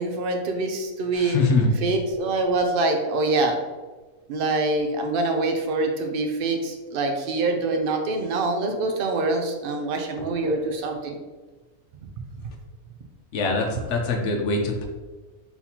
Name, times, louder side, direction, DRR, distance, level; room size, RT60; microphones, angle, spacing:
voice 1, 0.0-1.4 1.7-3.6 4.3-11.2, right 2 dB, 55° right, 3 dB, 0.6 m, -25 dB
voice 2, 1.2-1.7 13.3-14.8, left 3 dB, 60° left, 1 dB, 0.9 m, -23 dB
4.0 x 4.0 x 2.9 m, 1.3 s
omnidirectional pair, 1.5 m